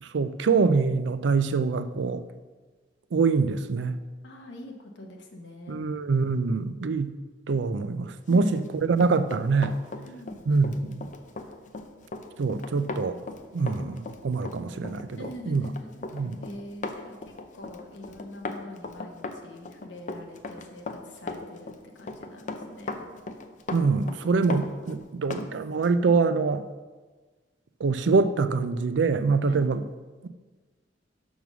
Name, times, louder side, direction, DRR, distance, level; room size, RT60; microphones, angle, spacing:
voice 1, 0.0-2.2 3.1-4.0 5.7-7.1 7.5-9.8 10.5-11.1 12.4-13.2 13.5-15.2 15.5-15.6 16.1-16.4 23.7-26.6 27.8-29.8, right 4 dB, 75° right, 12 dB, 0.4 m, -24 dB
voice 2, 4.2-5.8 8.3-8.7 10.0-10.4 12.5-12.6 15.2-23.0 29.5-29.7, left 1 dB, 75° left, 2 dB, 1.1 m, -44 dB
Run, 8.4-25.5 25.8-26.0, left 3 dB, 45° left, 0.6 m, -38 dB
6.1 x 5.4 x 6.1 m, 1.3 s
head